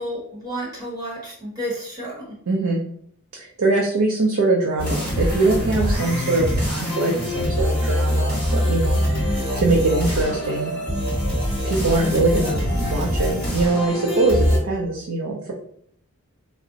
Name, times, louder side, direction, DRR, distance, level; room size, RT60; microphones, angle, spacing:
voice 1, 0.0-2.4, equal, 15° right, -6 dB, 1.1 m, -31 dB
voice 2, 2.5-2.8 3.4-10.7 11.6-15.5, right 2 dB, 70° right, -2 dB, 0.5 m, -22 dB
sound 1, 4.8-14.6, equal, 5° left, 1.3 m, -23 dB
2.5 x 2.0 x 3.8 m, 0.64 s
head